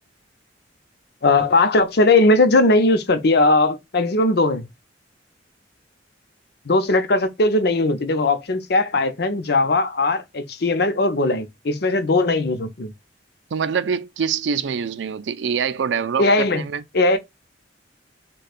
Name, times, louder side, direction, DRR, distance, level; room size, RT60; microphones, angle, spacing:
voice 1, 1.2-4.7 6.6-12.9 16.2-16.6 16.9-17.2, left 2 dB, 60° left, 0.7 m, -19 dB
voice 2, 13.5-16.8, right 6 dB, 75° right, 0.4 m, -25 dB
6.5 x 2.3 x 2.4 m
head